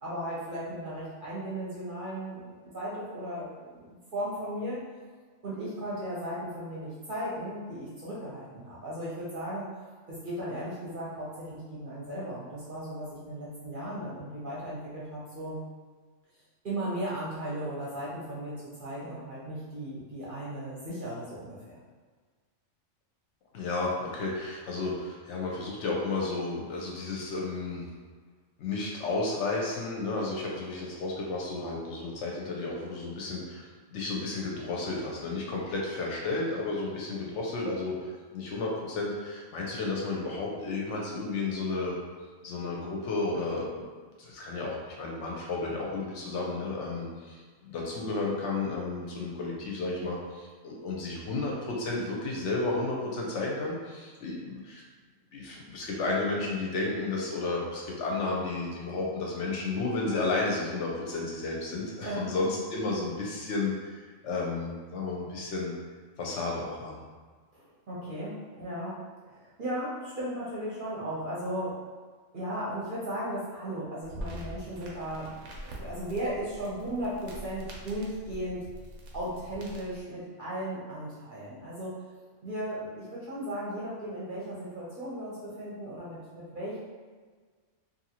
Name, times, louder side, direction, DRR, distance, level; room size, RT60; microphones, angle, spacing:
voice 1, 0.0-2.4 2.7-4.8 5.4-9.7 10.1-15.6 16.6-21.8 62.0-62.3 67.5-69.0 69.3-71.8 72.3-75.3 75.6-78.6 79.1-81.9 82.4-86.8, right 1 dB, 50° right, -8 dB, 0.7 m, -36 dB
voice 2, 23.5-27.9 28.6-42.0 42.4-43.8 44.2-54.8 55.3-65.7 66.2-67.0, left 3 dB, 70° left, -2 dB, 0.8 m, -32 dB
sound 1, 74.0-80.0, equal, 85° right, 1.0 m, -44 dB
2.7 x 2.6 x 2.8 m, 1.5 s
omnidirectional pair, 1.4 m